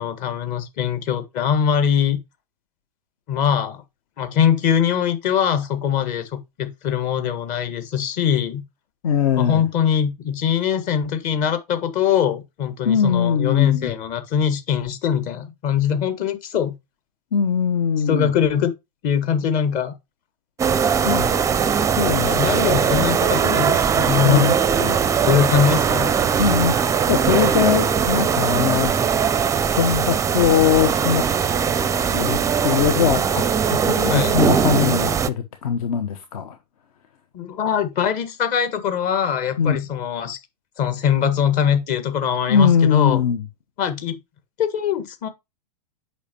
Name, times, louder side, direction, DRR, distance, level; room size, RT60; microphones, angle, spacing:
voice 1, 0.0-2.2 3.3-3.8 4.2-8.6 9.4-16.7 18.1-18.7 19.0-19.9 22.2-24.5 25.2-26.1 34.1-34.4 37.3-40.4 40.8-43.2 43.8-44.2 44.6-45.3, left 8 dB, 40° left, 1.6 m, -22 dB
voice 2, 9.0-9.7 12.8-13.9 17.3-18.3 21.0-21.6 21.9-23.1 24.2-25.0 26.4-26.8 27.1-28.9 29.6-31.3 32.1-36.6 39.6-39.8 42.5-43.5, left 7 dB, 60° left, 1.1 m, -21 dB
sound 1, 20.6-35.3, right 7 dB, 15° right, 0.5 m, -20 dB
8.2 x 5.6 x 2.9 m
hypercardioid pair, 100°, 21 cm